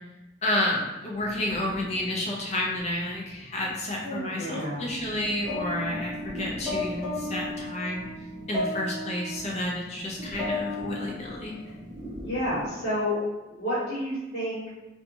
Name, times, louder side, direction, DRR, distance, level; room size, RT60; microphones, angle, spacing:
voice 1, 0.4-8.1 8.5-11.6, left 1 dB, 35° left, -2 dB, 0.5 m, -30 dB
sound 1, 1.1-12.7, equal, 45° right, 0.6 m, -43 dB
sound 2, 4.0-5.2 5.5-9.4 10.1-11.7, left 2 dB, 20° right, 0.9 m, -34 dB
voice 2, 4.2-4.9 12.2-13.2 13.5-14.7, equal, 55° left, -11 dB, 1.1 m, -30 dB
2.6 x 2.2 x 2.8 m, 1.0 s
head